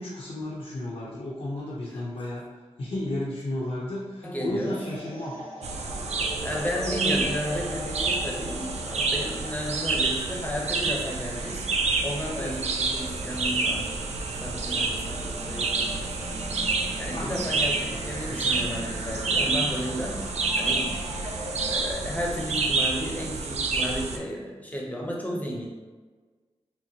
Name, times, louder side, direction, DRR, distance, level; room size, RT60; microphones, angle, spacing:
voice 1, 0.0-2.4 2.8-5.3 9.4-9.5 12.4-12.6 17.1-17.4, left 1 dB, 70° left, -8 dB, 0.8 m, -33 dB
voice 2, 4.2-4.8 6.4-11.6 12.0-13.9 14.4-16.3 17.0-20.2 20.5-21.0 21.7-25.7, equal, 15° left, -2 dB, 0.9 m, -33 dB
sound 1, 4.5-21.9, equal, 50° right, 1.0 m, -40 dB
sound 2, 5.6-24.2, right 3 dB, 75° right, 0.4 m, -29 dB
4.4 x 2.1 x 2.8 m, 1.4 s
cardioid pair, 45°, 11 cm